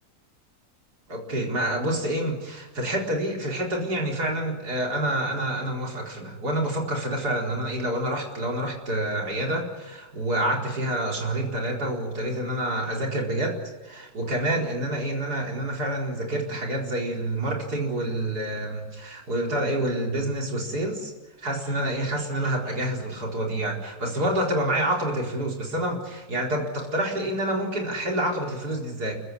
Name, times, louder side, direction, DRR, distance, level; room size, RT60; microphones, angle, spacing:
voice 1, 1.1-13.6 13.8-21.1 21.4-29.1, right 1 dB, 80° right, 0 dB, 4.9 m, -28 dB
29.5 x 16.0 x 9.8 m, 1.2 s
omnidirectional pair, 1.7 m